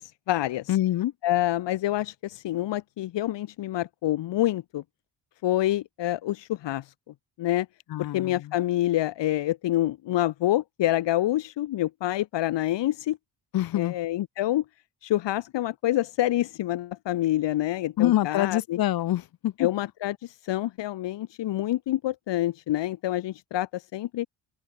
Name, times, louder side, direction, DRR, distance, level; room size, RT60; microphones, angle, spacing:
voice 1, 0.0-0.8 1.2-4.8 5.4-6.9 7.4-7.7 8.1-13.2 13.8-14.6 15.0-18.8 19.6-24.3, left 14 dB, 80° left, 1.9 m, -27 dB
voice 2, 0.7-1.1 7.9-8.5 13.5-13.9 18.0-19.7, left 14 dB, 55° left, 0.8 m, -25 dB
cardioid pair, 165°, 42 cm